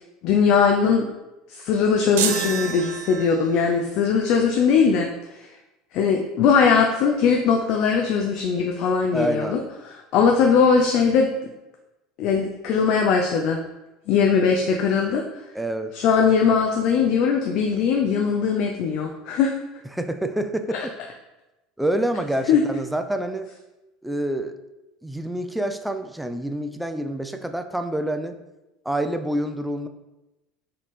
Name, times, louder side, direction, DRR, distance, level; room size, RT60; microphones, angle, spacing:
voice 1, 0.2-1.1 1.5-5.5 5.9-11.3 12.2-13.6 14.1-15.2 15.9-19.5 20.7-20.8 22.5-22.6, left 6 dB, 60° left, 2 dB, 0.5 m, -20 dB
sound 1, 2.2-3.7, right 8 dB, 75° right, 0.4 m, -28 dB
voice 2, 9.1-9.6 15.5-15.9 19.9-20.9 21.8-23.5 24.0-24.5 25.0-28.4 28.9-29.9, right 1 dB, 5° right, 7 dB, 0.5 m, -27 dB
4.0 x 3.2 x 4.1 m, 1.0 s
hypercardioid pair, 80°, 0 cm